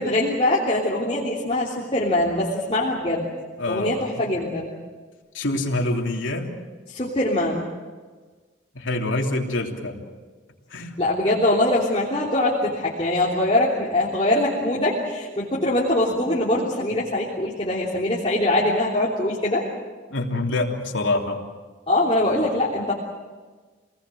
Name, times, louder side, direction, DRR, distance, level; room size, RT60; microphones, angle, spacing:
voice 1, 0.0-3.2 3.7-4.7 6.9-7.6 11.0-19.6 21.9-22.9, left 1 dB, 30° left, -6 dB, 3.3 m, -22 dB
voice 2, 3.6-4.1 5.3-6.5 8.7-10.0 10.7-10.9 20.1-21.4, left 2 dB, 85° left, 1 dB, 3.2 m, -25 dB
28.0 x 19.5 x 7.8 m, 1.4 s
head